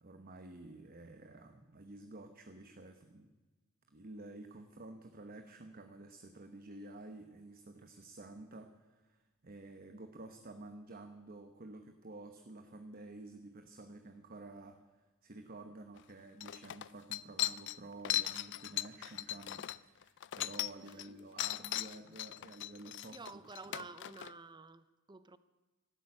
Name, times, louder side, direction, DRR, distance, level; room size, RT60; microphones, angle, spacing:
voice 1, 0.0-3.3 3.9-23.2 23.7-23.8, right 2 dB, 45° right, 0.9 m, -51 dB
sound 1, 16.0-16.1 16.4-21.1 21.4-24.3, left 14 dB, 55° left, 0.4 m, -38 dB
voice 2, 20.8-21.2 23.1-25.4, right 4 dB, 20° right, 0.6 m, -51 dB
12.5 x 11.5 x 8.7 m
head